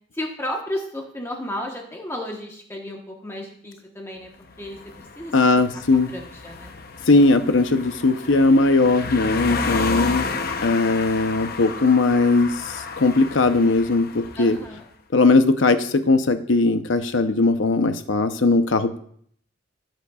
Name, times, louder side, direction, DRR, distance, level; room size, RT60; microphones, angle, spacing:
voice 1, 0.1-4.3 4.6-4.8 5.2-5.6 6.1-6.7 9.7-10.5 14.4-14.8, left 1 dB, 15° left, 0 dB, 1.1 m, -33 dB
sound 1, 4.4-14.7, left 4 dB, 55° left, 0.8 m, -32 dB
voice 2, 5.3-6.1 7.1-10.3 10.6-12.5 13.0-14.1 14.4-14.6 15.1-19.0, left 3 dB, 90° left, 9 dB, 0.8 m, -18 dB
17.5 x 7.7 x 2.4 m, 0.64 s
head